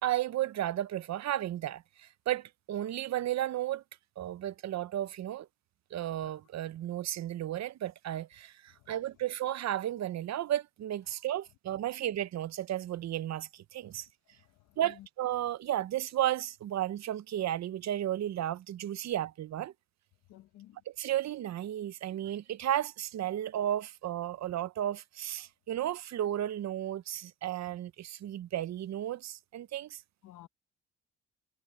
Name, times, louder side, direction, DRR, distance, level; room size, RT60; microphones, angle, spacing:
voice 1, 0.0-3.8 4.2-5.5 5.9-14.1 14.8-19.7 20.9-30.0, right 12 dB, 60° right, 0.8 m, -33 dB
voice 2, 14.3-15.1 20.3-20.8 30.2-30.5, left 14 dB, 85° left, 1.3 m, -55 dB
cardioid pair, 90°, 30 cm